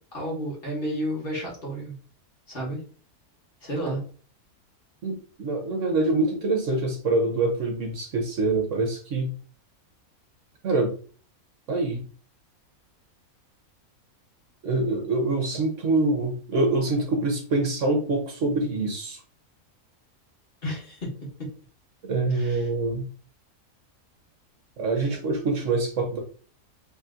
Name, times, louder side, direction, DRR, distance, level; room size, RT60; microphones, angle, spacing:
voice 1, 0.1-2.0 2.5-2.8 3.6-4.0 20.6-21.5 22.3-22.7, equal, 40° left, -4 dB, 1.8 m, -32 dB
voice 2, 5.0-9.3 10.6-10.9 11.7-12.0 14.6-19.2 22.0-23.0 24.8-26.2, right 2 dB, 60° right, 3 dB, 1.1 m, -25 dB
3.4 x 3.0 x 3.7 m, 0.41 s
omnidirectional pair, 1.5 m